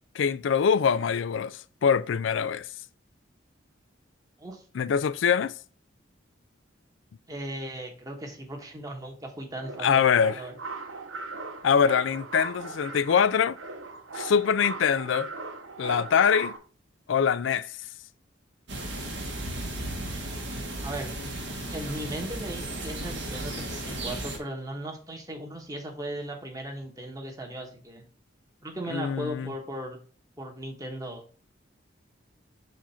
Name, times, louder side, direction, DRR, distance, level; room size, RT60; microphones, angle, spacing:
voice 1, 0.2-2.7 4.7-5.5 9.8-10.4 11.6-13.6 14.1-15.3 15.8-16.6 17.1-17.7 28.9-29.5, left 7 dB, 70° left, 0.4 m, -23 dB
voice 2, 7.3-10.5 20.8-21.1 21.7-28.0 28.6-30.0 30.4-31.2, right 1 dB, 20° right, 1.1 m, -37 dB
sound 1, 9.6-16.6, right 3 dB, 85° right, 0.9 m, -39 dB
sound 2, 18.7-24.4, right 1 dB, 60° right, 1.4 m, -35 dB
7.3 x 2.5 x 5.6 m
head